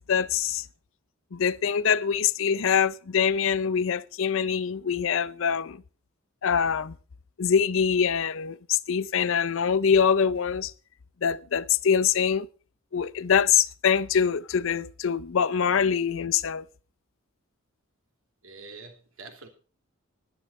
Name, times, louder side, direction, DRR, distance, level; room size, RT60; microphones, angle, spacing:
voice 1, 0.1-0.7 1.3-5.8 6.4-6.9 7.4-10.7 11.2-12.5 12.9-16.6, left 7 dB, 65° left, 0.5 m, -24 dB
voice 2, 18.4-19.5, right 3 dB, 65° right, 3.1 m, -45 dB
11.5 x 10.5 x 5.5 m
head